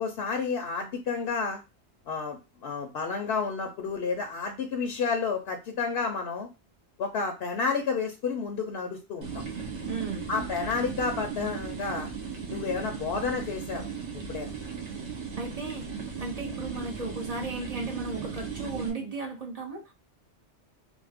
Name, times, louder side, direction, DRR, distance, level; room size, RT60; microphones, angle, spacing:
voice 1, 0.0-1.6 2.1-6.5 7.0-9.4 10.3-12.1 12.5-13.9 14.3-14.5, left 5 dB, 70° left, 4 dB, 0.8 m, -30 dB
sound 1, 9.2-18.9, right 6 dB, 80° right, 1.2 m, -37 dB
voice 2, 9.9-10.3 15.3-15.8 16.2-19.8, right 3 dB, 40° right, 2 dB, 0.7 m, -35 dB
3.4 x 2.1 x 3.4 m, 0.26 s
omnidirectional pair, 1.1 m